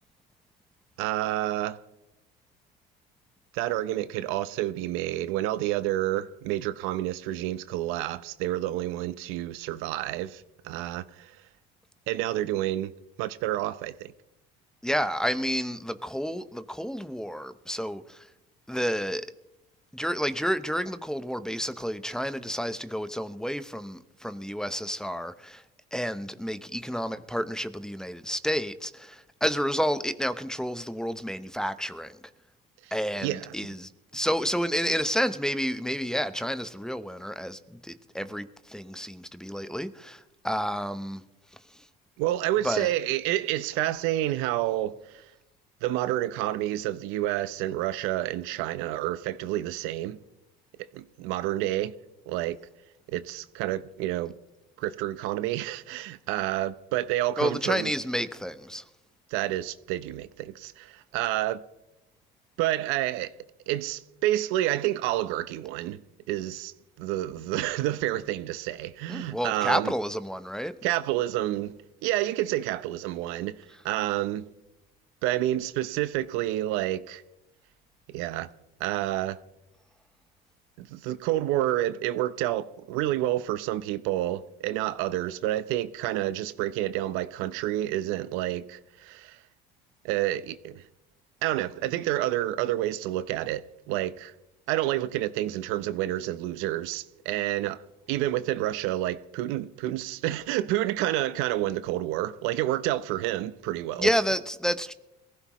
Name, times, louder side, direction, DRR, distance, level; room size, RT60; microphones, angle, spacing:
voice 1, 1.0-1.8 3.5-11.3 12.1-12.9 13.2-14.1 32.8-32.9 33.2-33.5 42.2-45.2 45.8-50.2 50.9-51.9 52.3-52.6 53.1-54.3 54.8-57.9 59.3-61.6 62.6-63.3 63.7-66.0 66.3-66.7 67.0-69.9 70.8-74.5 75.2-77.2 78.1-78.5 78.8-79.4 80.8-89.4 90.0-90.8 91.4-94.3 94.7-97.8 98.1-104.1, right 14 dB, 75° right, 0.8 m, -29 dB
voice 2, 14.8-18.3 18.7-19.3 19.9-25.6 25.9-32.2 32.9-41.2 41.7-41.9 42.6-42.9 57.4-58.8 69.1-70.7 104.0-104.9, equal, 5° left, 0.8 m, -30 dB
22.5 x 15.5 x 3.1 m
supercardioid pair, 100°, 21 cm